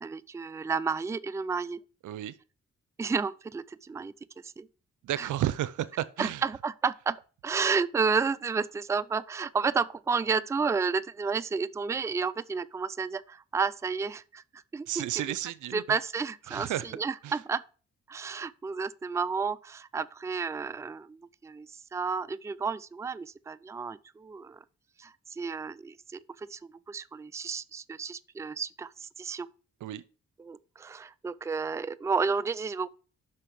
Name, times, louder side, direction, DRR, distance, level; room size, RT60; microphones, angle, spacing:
voice 1, 0.0-1.8 3.0-4.1 4.4-4.7 5.2-5.3 6.2-7.2 7.4-14.4 14.7-15.2 15.7-17.6 18.1-24.6 25.0-29.5 30.4-32.9, right 5 dB, 10° right, 0.3 m, -31 dB
voice 2, 2.0-2.3 5.0-6.4 14.9-15.8 16.5-16.8 17.2-17.3 29.8-30.0, right 13 dB, 85° right, 0.5 m, -32 dB
5.8 x 4.9 x 4.5 m
cardioid pair, 55°, 30 cm